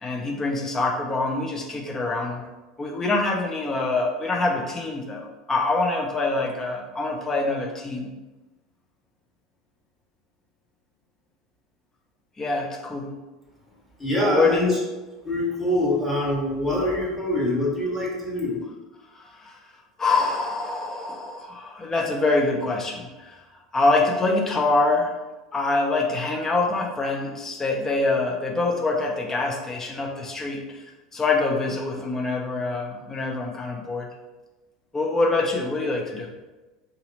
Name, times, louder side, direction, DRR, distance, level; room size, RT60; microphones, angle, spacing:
voice 1, 0.0-2.4 2.8-8.1 12.4-13.1 14.2-14.8 19.4-19.6 20.0-23.4 23.7-25.1 25.5-30.6 31.1-34.1 34.9-36.3, left 3 dB, 20° left, 0 dB, 0.7 m, -25 dB
voice 2, 14.0-14.7 15.2-18.6, left 1 dB, 5° left, -5 dB, 1.4 m, -24 dB
2.8 x 2.5 x 3.9 m, 1.1 s
figure-of-eight pair, 75°, 2 cm